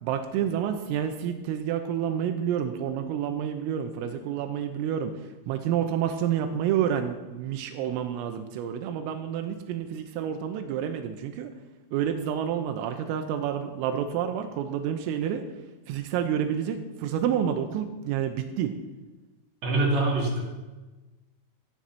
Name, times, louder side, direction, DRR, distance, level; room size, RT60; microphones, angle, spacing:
voice 1, 0.0-5.1 5.5-11.5 11.9-15.4 15.9-18.7, right 9 dB, 85° right, 7 dB, 3.4 m, -29 dB
voice 2, 19.6-20.5, right 2 dB, 45° right, -2 dB, 2.8 m, -24 dB
14.5 x 10.0 x 5.9 m, 1.1 s
omnidirectional pair, 6.0 m